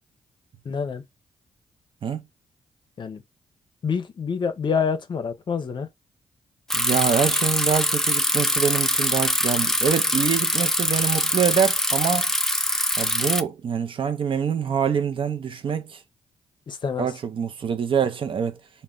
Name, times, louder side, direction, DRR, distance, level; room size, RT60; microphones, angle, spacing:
voice 1, 0.7-1.0 3.0-3.2 3.8-5.9 16.7-17.1, left 6 dB, 50° left, 0.6 m, -27 dB
Bicycle, 6.7-13.4, left 1 dB, 5° left, 0.3 m, -23 dB
voice 2, 6.7-12.3 13.0-16.0 17.0-18.6, right 7 dB, 55° right, 0.5 m, -25 dB
2.1 x 2.0 x 3.6 m
supercardioid pair, 55°, 11 cm